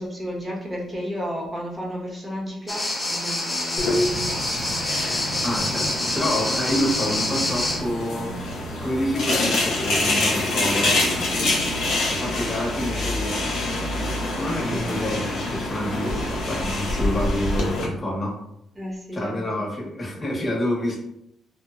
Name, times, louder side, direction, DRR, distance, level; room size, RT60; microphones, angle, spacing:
voice 1, 0.0-4.8 18.8-19.4, equal, 20° right, -2 dB, 0.7 m, -33 dB
sound 1, 2.7-7.8, left 1 dB, 15° left, 0.5 m, -26 dB
sound 2, 3.8-17.9, left 2 dB, 80° left, 0.7 m, -26 dB
sound 3, 4.1-17.1, right 3 dB, 60° right, 0.4 m, -43 dB
voice 2, 5.4-8.4 8.8-11.1 12.1-13.4 14.3-18.3 19.1-21.0, left 1 dB, 35° left, -3 dB, 1.0 m, -28 dB
2.8 x 2.0 x 2.4 m, 0.79 s
cardioid pair, 90°, 0 cm